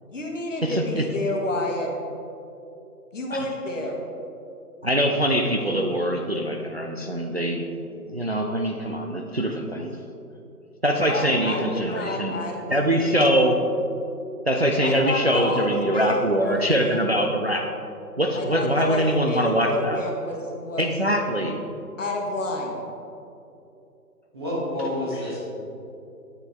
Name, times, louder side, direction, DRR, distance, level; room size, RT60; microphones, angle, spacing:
voice 1, 0.1-1.9 3.1-4.0 11.0-13.4 14.8-17.0 18.3-20.9 22.0-22.8, left 1 dB, 50° left, 1 dB, 1.3 m, -29 dB
voice 2, 0.6-1.0 3.3-3.4 4.8-7.7 7.9-10.0 10.8-12.3 12.7-13.6 14.4-17.6 18.2-20.0 20.8-21.6 25.1-25.2, equal, 45° right, 2 dB, 0.4 m, -23 dB
voice 3, 24.3-25.4, left 1 dB, 15° right, -7 dB, 1.0 m, -28 dB
9.8 x 6.6 x 3.4 m, 2.8 s
figure-of-eight pair, 150°, 47 cm